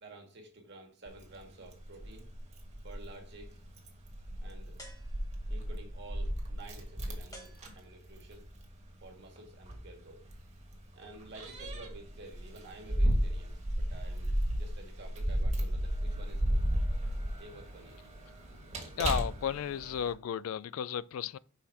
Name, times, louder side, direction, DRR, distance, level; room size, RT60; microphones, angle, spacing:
voice 1, 0.0-2.3 2.8-3.6 4.4-4.8 5.5-8.4 9.0-10.2 10.9-16.6 17.4-18.0, right 2 dB, 55° right, 1.6 m, -51 dB
Keys jangling, 1.1-20.1, equal, 35° right, 1.4 m, -35 dB
sound 1, 4.8-5.7 7.3-8.3, equal, 15° left, 1.4 m, -53 dB
voice 2, 19.0-21.4, left 8 dB, 80° left, 0.3 m, -33 dB
5.7 x 4.3 x 4.7 m
head